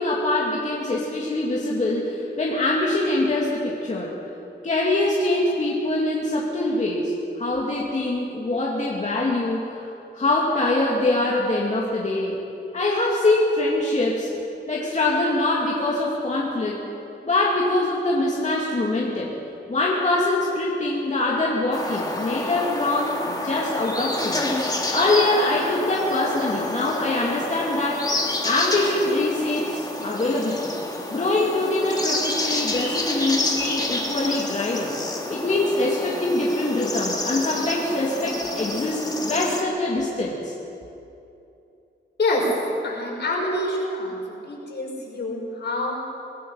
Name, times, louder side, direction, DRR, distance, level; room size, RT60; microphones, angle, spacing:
voice 1, 0.0-4.2 4.6-9.9 10.1-12.4 12.7-14.3 14.7-16.8 17.2-19.3 19.7-24.4 24.9-28.1 28.4-30.7 31.1-34.9 35.3-40.5, left 2 dB, 40° left, -4 dB, 2.6 m, -24 dB
sound 1, 21.7-39.6, left 2 dB, 20° left, 2.4 m, -29 dB
voice 2, 42.8-46.0, left 2 dB, 60° left, -2 dB, 5.7 m, -26 dB
24.5 x 18.5 x 5.8 m, 2.8 s
wide cardioid pair, 135°, 20 cm